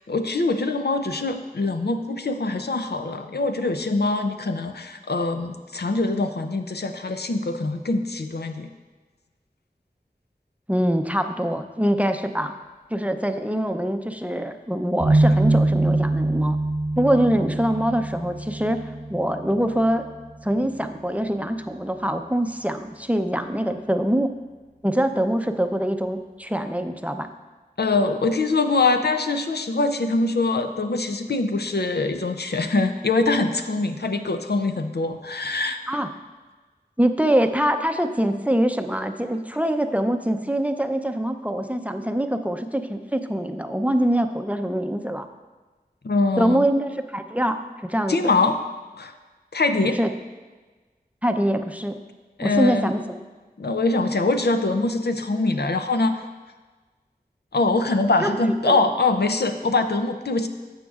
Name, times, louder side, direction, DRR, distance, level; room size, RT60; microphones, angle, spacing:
voice 1, 0.1-8.7 27.8-35.8 46.0-46.6 48.1-48.6 48.9-49.1 49.5-50.0 52.4-52.9 53.6-56.2 57.5-60.5, left 3 dB, 85° left, 7 dB, 0.5 m, -23 dB
voice 2, 10.7-12.5 12.9-16.6 17.0-18.8 19.1-20.0 20.4-24.3 24.8-27.3 35.9-36.1 37.0-45.3 46.4-48.2 50.0-50.1 51.2-52.0 52.4-53.2 58.2-58.3 58.6-58.8, right 1 dB, 10° right, 7 dB, 0.5 m, -24 dB
sound 1, 15.0-22.0, right 2 dB, 50° right, 0.7 m, -25 dB
12.5 x 7.9 x 2.4 m, 1.3 s
wide cardioid pair, 45°, 16 cm